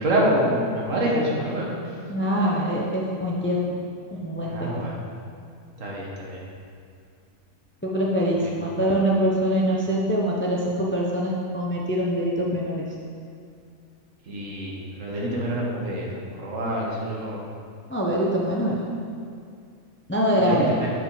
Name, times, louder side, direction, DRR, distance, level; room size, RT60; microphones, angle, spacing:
voice 1, 0.0-1.8 4.4-4.9 5.8-6.4 14.3-17.4 20.4-20.9, right 1 dB, 70° right, -3 dB, 1.7 m, -26 dB
voice 2, 2.1-3.6 4.2-4.7 7.8-12.8 17.9-18.7 20.1-20.7, equal, 10° left, -3 dB, 0.5 m, -24 dB
7.2 x 4.7 x 5.5 m, 2.3 s
omnidirectional pair, 1.4 m